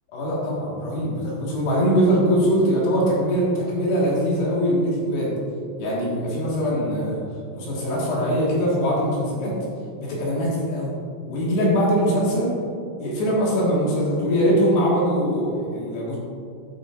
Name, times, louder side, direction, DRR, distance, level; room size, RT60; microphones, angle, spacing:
voice 1, 0.1-5.3 5.8-7.2 7.5-9.6 10.0-10.9 11.3-12.5 13.0-16.2, equal, 65° left, -6 dB, 3.5 m, -22 dB
13.0 x 8.3 x 2.5 m, 2.5 s
omnidirectional pair, 5.8 m